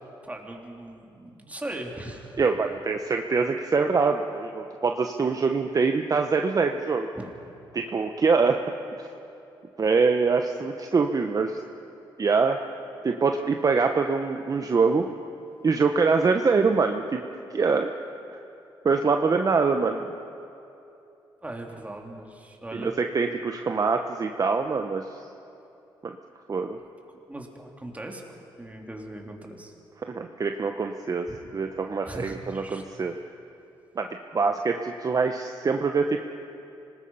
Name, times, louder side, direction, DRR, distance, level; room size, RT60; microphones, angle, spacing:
voice 1, 0.2-2.4 7.2-7.3 21.4-22.9 27.1-28.2 28.6-29.7 31.3-31.4 32.0-32.8, right 1 dB, 15° right, 1 dB, 3.2 m, -39 dB
voice 2, 2.4-7.1 7.7-8.6 9.0-9.1 9.8-11.6 12.2-12.6 13.0-15.1 15.6-17.2 17.5-17.9 18.3-18.4 18.8-20.1 22.7-25.3 26.0-26.2 26.5-26.8 30.1-33.1 34.0-34.1 34.3-36.2, right 4 dB, 40° right, 5 dB, 1.0 m, -24 dB
26.0 x 19.5 x 5.7 m, 2.8 s
cardioid pair, 80°, 9 cm